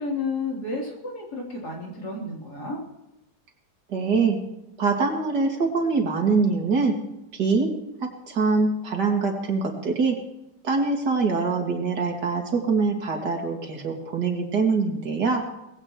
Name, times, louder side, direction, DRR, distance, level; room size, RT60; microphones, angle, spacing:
voice 1, 0.0-2.8, left 3 dB, 70° left, -2 dB, 4.2 m, -31 dB
voice 2, 3.9-4.4 4.8-7.0 7.3-7.7 8.3-10.2 10.6-15.4, right 4 dB, 85° right, 1 dB, 2.8 m, -23 dB
19.5 x 16.0 x 3.1 m, 0.92 s
omnidirectional pair, 1.8 m